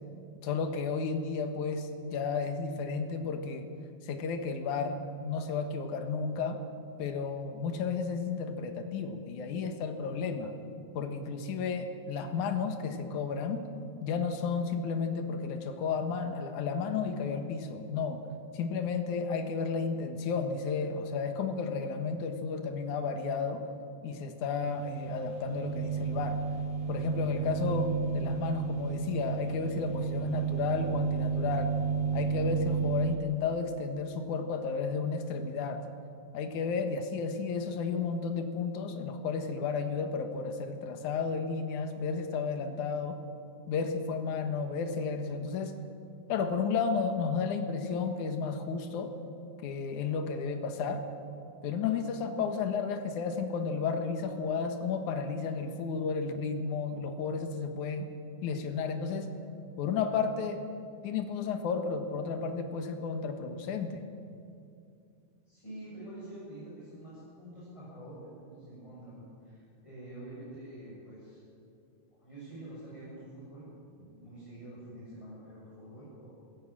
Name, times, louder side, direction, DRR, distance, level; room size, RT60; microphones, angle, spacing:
voice 1, 0.4-3.7 4.0-6.6 7.0-10.6 10.9-13.6 14.0-18.2 18.5-23.7 24.0-26.4 26.9-31.8 32.1-35.8 36.3-43.2 43.7-45.8 46.3-49.1 49.6-51.1 51.6-58.1 58.4-59.3 59.8-60.6 61.0-64.0, left 5 dB, 70° left, 6 dB, 2.8 m, -32 dB
sound 1, 24.6-33.2, right 5 dB, 60° right, 2.4 m, -32 dB
voice 2, 65.4-71.4 72.1-73.7 74.0-76.3, right 1 dB, 10° left, -9 dB, 7.6 m, -47 dB
20.5 x 16.0 x 8.8 m, 2.4 s
omnidirectional pair, 3.8 m